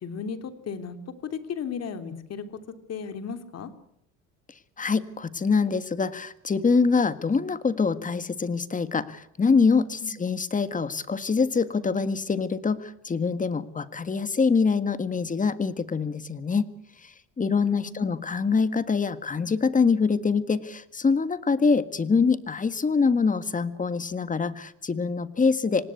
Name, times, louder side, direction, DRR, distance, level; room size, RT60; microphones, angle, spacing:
voice 1, 0.0-2.4 2.9-3.7 10.0-10.2 17.6-18.1, left 6 dB, 55° left, 8 dB, 3.2 m, -35 dB
voice 2, 4.8-16.7 17.0-25.9, left 5 dB, 25° left, 13 dB, 1.7 m, -24 dB
26.0 x 19.0 x 8.4 m, 0.77 s
cardioid pair, 100°, 31 cm